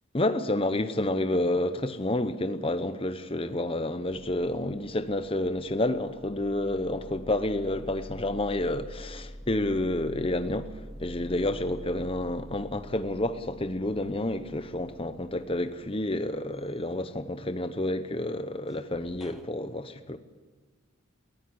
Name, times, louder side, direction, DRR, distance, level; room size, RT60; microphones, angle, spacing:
voice 1, 0.1-20.2, left 1 dB, 25° left, 0.9 m, -29 dB
sound 1, 3.2-3.3 3.6-19.5, equal, ahead, 1.0 m, -47 dB
20.5 x 14.5 x 9.7 m
head